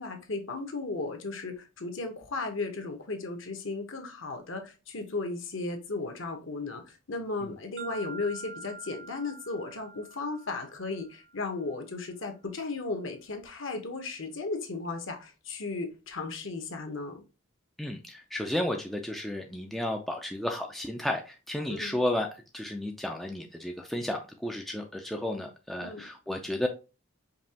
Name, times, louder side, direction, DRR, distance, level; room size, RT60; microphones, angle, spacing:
voice 1, 0.0-17.2 21.7-22.0 25.8-26.1, left 3 dB, 60° left, 1.0 m, -35 dB
sound 1, 7.8-11.7, right 3 dB, 70° right, 1.2 m, -46 dB
voice 2, 17.8-26.7, left 1 dB, ahead, 0.4 m, -33 dB
5.2 x 2.8 x 2.8 m
head